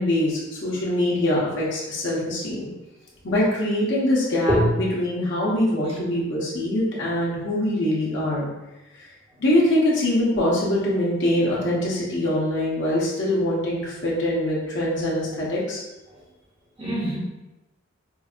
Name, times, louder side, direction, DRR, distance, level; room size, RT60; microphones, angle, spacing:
voice 1, 0.0-2.7 3.2-4.6 4.9-8.5 9.4-15.8, left 1 dB, 60° left, -6 dB, 1.1 m, -23 dB
voice 2, 16.8-17.2, equal, 30° right, -5 dB, 0.9 m, -24 dB
4.8 x 2.7 x 2.5 m, 1.0 s
head